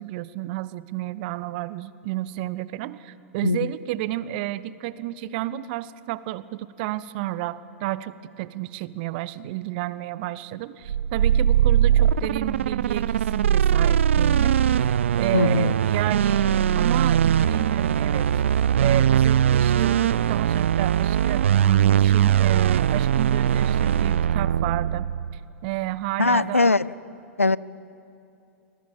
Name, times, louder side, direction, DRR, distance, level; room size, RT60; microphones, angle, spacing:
voice 1, 0.0-14.6 15.2-18.3 18.8-25.1 25.6-26.7, right 16 dB, 45° right, 17 dB, 0.9 m, -31 dB
voice 2, 3.4-3.8 15.3-15.7 26.2-26.9 27.4-27.6, left 3 dB, 85° left, 21 dB, 0.5 m, -21 dB
sound 1, 10.9-25.4, right 9 dB, 65° right, 0.5 m, -21 dB
29.0 x 21.0 x 7.5 m, 2.7 s
figure-of-eight pair, 95°, 7 cm